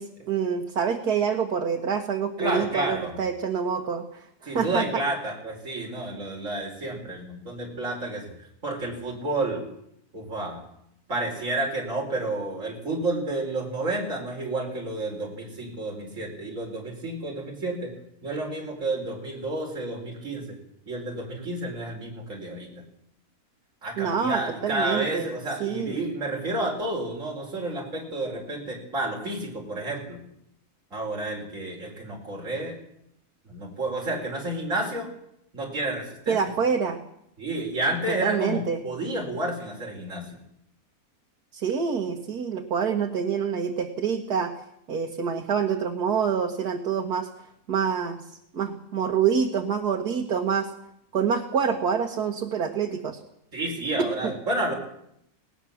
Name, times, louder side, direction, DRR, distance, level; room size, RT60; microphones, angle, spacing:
voice 1, 0.0-4.9 24.0-25.3 25.6-26.0 36.3-37.0 38.1-38.8 41.5-44.5 44.9-47.3 47.7-48.2 48.5-50.7 51.1-53.2 54.2-54.4, right 6 dB, 90° right, 2 dB, 2.1 m, -26 dB
voice 2, 2.4-3.2 4.5-8.3 8.6-9.6 10.1-10.6 11.1-17.9 18.2-20.6 20.9-22.8 23.8-30.2 30.9-32.8 33.4-35.1 35.5-36.4 37.4-40.3 53.5-54.7, right 2 dB, 55° right, -1 dB, 4.8 m, -30 dB
19.0 x 19.0 x 7.3 m, 0.76 s
omnidirectional pair, 1.6 m